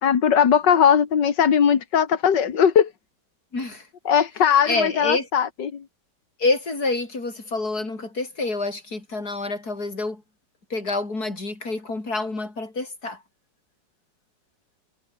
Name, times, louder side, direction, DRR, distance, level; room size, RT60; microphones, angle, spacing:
voice 1, 0.0-2.9 4.1-5.8, left 8 dB, 70° left, 2.4 m, -19 dB
voice 2, 3.5-3.9 4.7-5.3 6.4-10.2 10.7-13.2, left 3 dB, 55° left, 5.7 m, -27 dB
omnidirectional pair, 2.0 m